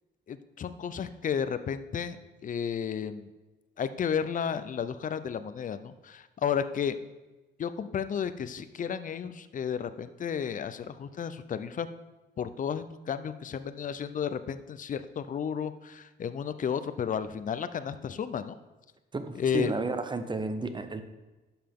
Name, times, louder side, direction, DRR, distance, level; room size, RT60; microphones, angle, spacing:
voice 1, 0.3-2.2 2.4-3.3 3.8-7.0 7.6-11.9 12.4-18.6 19.4-19.7, left 7 dB, 40° left, 12 dB, 0.6 m, -32 dB
voice 2, 19.1-21.0, right 3 dB, 25° right, 9 dB, 0.8 m, -32 dB
11.0 x 5.8 x 3.7 m, 1.1 s
cardioid pair, 90°, 20 cm